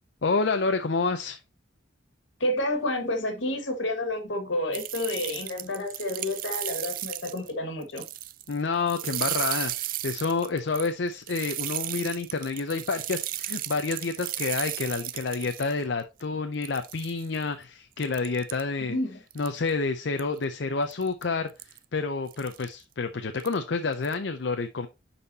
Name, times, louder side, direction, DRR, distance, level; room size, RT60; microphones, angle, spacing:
voice 1, 0.2-1.4 8.5-18.9 19.4-21.5 21.9-24.9, left 4 dB, 65° left, 0.6 m, -29 dB
voice 2, 2.4-8.0 18.8-19.2, left 1 dB, 80° left, 1.7 m, -30 dB
sound 1, 4.7-7.5 7.8-8.6 8.9-15.7 16.2-16.3 16.6-17.4 18.0-18.6 19.3-19.7 20.2-20.4 20.9-21.2 21.6-21.8 22.3-22.7 23.4-23.6 23.9-24.1, right 15 dB, 45° right, 0.4 m, -34 dB
10.5 x 4.2 x 2.8 m
head